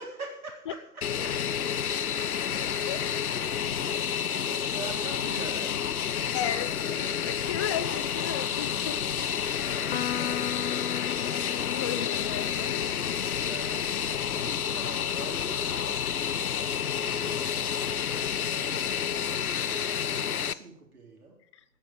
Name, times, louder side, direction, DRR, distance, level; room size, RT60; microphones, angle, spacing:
voice 1, 0.0-1.7 4.5-5.9 9.7-11.0 13.4-21.4, right 3 dB, 75° right, 3.7 m, -45 dB
Fixed-wing aircraft airplane, 1.0-20.5, left 8 dB, 75° left, 0.8 m, -30 dB
voice 2, 2.9-3.4 6.3-9.1 11.4-13.6 21.5-21.6, left 10 dB, 20° left, 0.4 m, -35 dB
Electric guitar, 9.9-13.5, left 12 dB, 40° left, 1.2 m, -37 dB
14.5 x 7.6 x 8.5 m
figure-of-eight pair, 115°, 44 cm